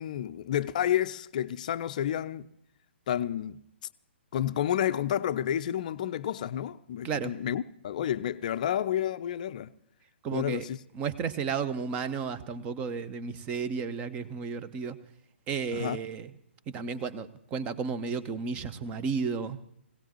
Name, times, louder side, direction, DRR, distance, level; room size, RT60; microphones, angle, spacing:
voice 1, 0.0-2.5 3.1-3.6 4.3-9.7 10.3-10.8 15.7-16.0, left 10 dB, 40° left, 0.6 m, -30 dB
voice 2, 10.2-10.6 10.9-15.0 15.5-16.3 16.7-19.6, right 5 dB, 20° right, 0.9 m, -33 dB
21.5 x 17.5 x 3.0 m
figure-of-eight pair, 125°, 6 cm